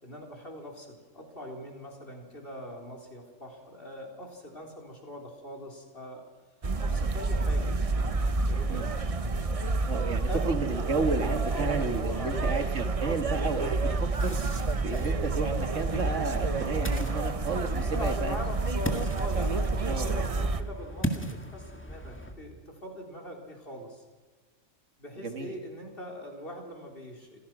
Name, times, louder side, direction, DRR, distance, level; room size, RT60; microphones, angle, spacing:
voice 1, 0.0-6.2 6.8-7.7 8.1-8.9 10.3-10.4 11.5-12.6 17.7-24.0 25.0-27.4, left 1 dB, 45° left, 1 dB, 4.4 m, -41 dB
sound 1, 6.6-20.6, right 3 dB, 30° right, 0.9 m, -29 dB
voice 2, 9.9-13.9 14.2-14.4 14.8-18.4 19.9-20.5 25.2-25.6, right 4 dB, 70° right, 7 dB, 2.0 m, -32 dB
Ocean, 14.2-22.4, equal, 10° left, 1.9 m, -39 dB
26.5 x 16.5 x 6.2 m, 1.4 s
omnidirectional pair, 1.3 m